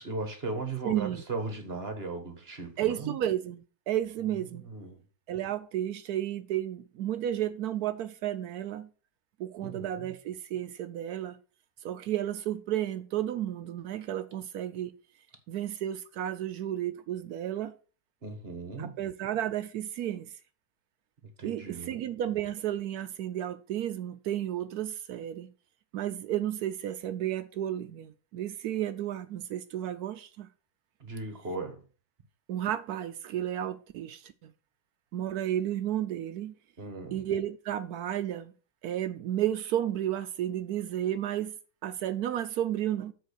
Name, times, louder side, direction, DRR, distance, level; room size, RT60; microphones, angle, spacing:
voice 1, 0.0-3.1 4.5-5.0 9.6-10.1 18.2-19.0 21.4-21.9 31.0-31.8 36.8-37.2, right 3 dB, 35° right, 1.7 m, -37 dB
voice 2, 0.8-1.2 2.8-4.7 5.3-8.9 9.4-11.4 11.8-14.9 15.5-17.7 18.8-20.3 21.4-25.5 25.9-30.5 32.5-34.5 35.1-36.5 37.1-38.5 38.8-41.5 41.8-43.1, right 11 dB, 70° right, 1.0 m, -32 dB
7.8 x 4.6 x 6.4 m
omnidirectional pair, 1.9 m